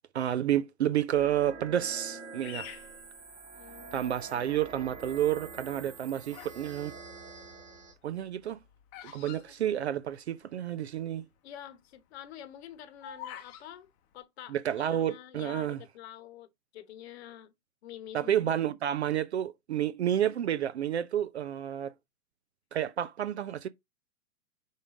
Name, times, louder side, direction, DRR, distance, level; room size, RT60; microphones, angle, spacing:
voice 1, 0.1-2.7 3.9-6.9 8.0-8.6 9.1-11.3 14.5-15.8 18.1-21.9 22.7-23.7, right 11 dB, 45° right, 0.5 m, -30 dB
sound 1, 1.1-7.9, right 4 dB, 15° right, 1.3 m, -46 dB
Bird vocalization bird call bird song, 2.4-3.9 4.5-5.0 5.7-6.7 6.9-10.4 10.7-10.8 11.0-11.3 11.8-13.7, left 10 dB, 25° left, 0.8 m, -47 dB
voice 2, 3.5-4.1 9.3-9.4 11.4-16.5 16.7-17.5 17.8-18.5, left 11 dB, 40° left, 1.1 m, -47 dB
5.2 x 3.7 x 5.0 m
figure-of-eight pair, 115°, 48 cm